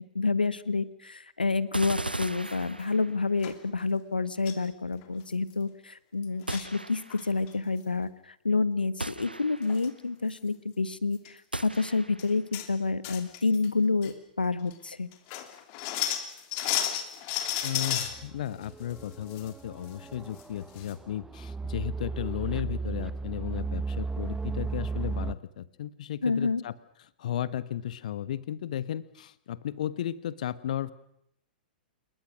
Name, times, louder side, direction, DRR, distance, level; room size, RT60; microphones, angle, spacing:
voice 1, 0.1-15.1 26.2-26.6, left 4 dB, 75° left, 16 dB, 1.3 m, -29 dB
sound 1, 1.7-3.4 6.5-7.3 9.0-9.9 11.5-12.4, right 2 dB, 85° right, 0.9 m, -37 dB
sound 2, 2.4-2.8 3.4-3.6 4.5-4.7 5.0-5.1 5.3-5.5 6.2-6.7 7.1-7.5 9.3-9.4 9.6-9.9 10.3-10.4 11.1-11.3 11.7-11.8 12.2-12.7 13.0-13.7 14.0-14.1 14.7-14.8 15.1-18.1 18.6-19.5 19.8-19.9 20.4-20.5 20.8-20.9, left 11 dB, 35° left, 3.0 m, -33 dB
voice 2, 17.6-26.7 27.2-30.9, left 11 dB, 55° left, 17 dB, 1.2 m, -34 dB
sound 3, 18.1-25.3, right 4 dB, 10° right, 0.8 m, -35 dB
28.0 x 21.5 x 6.2 m, 0.76 s
figure-of-eight pair, 105°, 5 cm